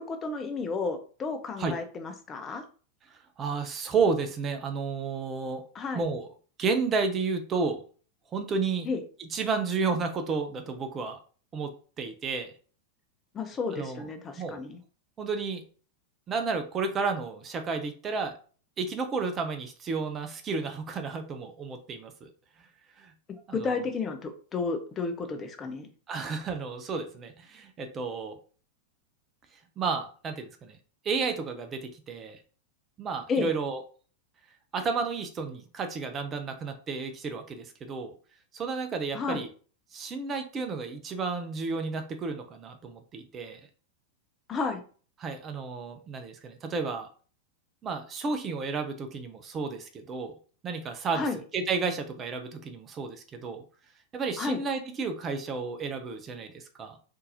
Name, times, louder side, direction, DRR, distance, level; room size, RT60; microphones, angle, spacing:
voice 1, 0.0-2.6 5.7-6.0 8.8-9.0 13.3-14.8 23.5-25.9 33.3-33.5 39.1-39.4 44.5-44.8 51.1-51.4 54.4-54.6, left 4 dB, 25° left, 7 dB, 0.6 m, -32 dB
voice 2, 3.1-5.6 5.9-6.3 6.6-7.8 8.3-8.9 9.2-11.2 11.5-11.7 12.0-12.5 13.7-14.0 14.4-14.6 15.2-15.6 16.3-18.3 18.8-22.3 22.6-22.7 23.0-23.1 23.5-23.8 26.1-28.4 29.8-30.8 31.0-32.4 33.0-33.8 34.7-38.1 38.5-39.5 39.9-43.6 45.2-47.1 47.8-50.4 50.6-53.6 54.1-57.0, right 4 dB, 25° right, 6 dB, 0.6 m, -32 dB
3.8 x 2.7 x 2.7 m, 0.40 s
figure-of-eight pair, 90°, 0 cm